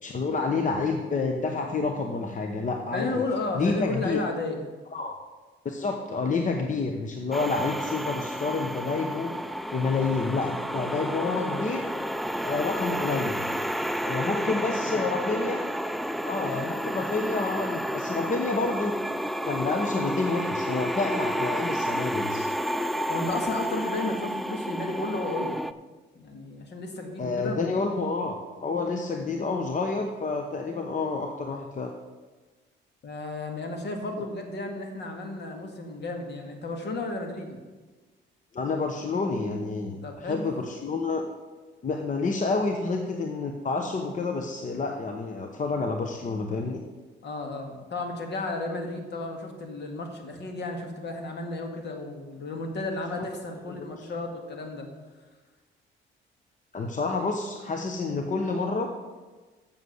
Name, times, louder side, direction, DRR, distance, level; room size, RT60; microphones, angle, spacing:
voice 1, 0.0-3.1 3.5-4.2 4.9-5.2 5.6-9.3 9.7-11.9 12.4-13.5 14.0-15.6 16.2-19.0 19.4-22.5 27.2-28.4 28.6-31.9 34.2-34.3 38.5-40.0 40.2-41.3 41.8-46.8 53.2-53.3 53.7-54.1 56.7-58.9, left 3 dB, 40° left, 4 dB, 1.0 m, -29 dB
voice 2, 2.9-4.7 14.3-14.5 14.8-15.0 23.1-25.6 26.1-27.6 33.0-37.6 40.0-40.4 47.2-54.9, left 2 dB, 60° left, 4 dB, 2.0 m, -33 dB
sound 1, 7.3-25.7, equal, ahead, 0.4 m, -31 dB
7.4 x 7.0 x 8.1 m, 1.3 s
cardioid pair, 90°, 20 cm